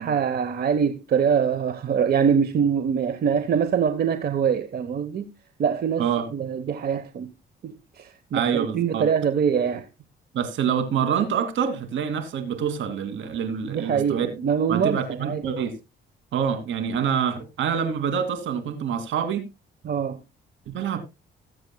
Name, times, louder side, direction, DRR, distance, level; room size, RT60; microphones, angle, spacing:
voice 1, 0.0-5.3 5.6-7.3 7.6-9.9 13.7-15.5 19.8-20.2, right 7 dB, 55° right, 1.0 m, -24 dB
voice 2, 8.3-9.0 10.3-14.3 14.7-15.8 16.3-19.4 20.7-21.0, right 7 dB, 75° right, 2.5 m, -26 dB
19.5 x 8.0 x 2.2 m
cardioid pair, 90°, 20 cm